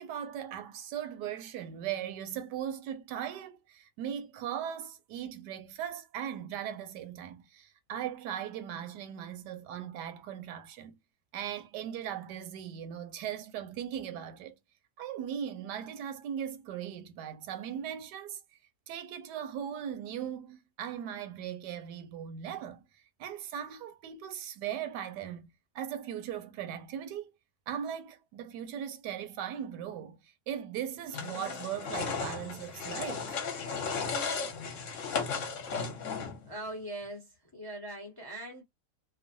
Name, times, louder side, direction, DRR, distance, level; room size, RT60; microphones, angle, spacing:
voice 1, 0.0-10.9 11.3-14.5 15.0-18.4 18.9-25.5 25.7-27.3 27.7-33.4, right 9 dB, 80° right, 1.2 m, -39 dB
sound 1, 31.1-36.5, left 5 dB, 55° left, 1.0 m, -35 dB
voice 2, 36.4-38.6, right 1 dB, 25° left, 0.4 m, -41 dB
3.0 x 2.1 x 2.6 m
omnidirectional pair, 1.8 m